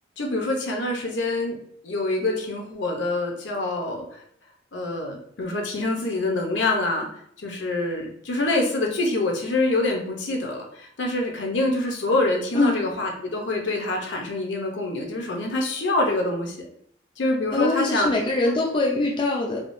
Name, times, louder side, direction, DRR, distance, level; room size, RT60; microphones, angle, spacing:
voice 1, 0.2-1.6 1.8-4.2 4.7-7.1 7.4-16.7 17.2-18.1, left 2 dB, 70° left, 1 dB, 0.7 m, -26 dB
voice 2, 17.5-19.6, left 2 dB, 25° left, -1 dB, 0.4 m, -23 dB
3.5 x 2.3 x 2.5 m, 0.66 s
head